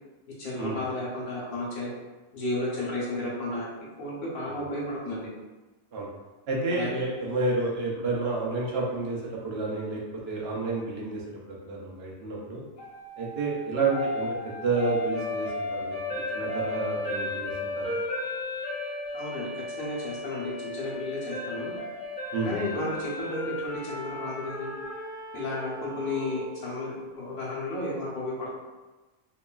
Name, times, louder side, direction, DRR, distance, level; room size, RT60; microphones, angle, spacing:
voice 1, 0.4-1.9 2.3-3.7 4.0-5.3 6.7-7.0 19.1-21.7 22.5-24.7 25.3-28.5, left 2 dB, 85° left, -5 dB, 1.2 m, -33 dB
voice 2, 6.5-10.0 10.3-11.2 11.5-12.6 13.2-16.0 16.3-17.8 22.3-22.6, right 3 dB, 60° right, -3 dB, 0.7 m, -30 dB
sound 1, 12.8-26.9, left 2 dB, 45° left, 0.7 m, -35 dB
3.0 x 2.2 x 2.2 m, 1.2 s
omnidirectional pair, 1.4 m